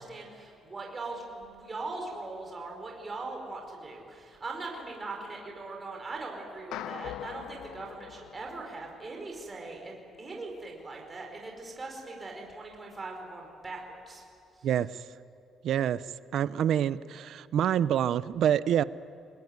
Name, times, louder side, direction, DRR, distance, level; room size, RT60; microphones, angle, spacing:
voice 1, 0.0-14.2 14.6-14.7, right 3 dB, 20° right, 0 dB, 5.0 m, -40 dB
sound 1, 6.7-9.2, left 12 dB, 80° left, 0.6 m, -42 dB
voice 2, 15.6-16.0 16.3-18.8, right 10 dB, 55° right, 16 dB, 0.6 m, -26 dB
30.0 x 21.0 x 9.5 m, 2.5 s
cardioid pair, 180°, 0 cm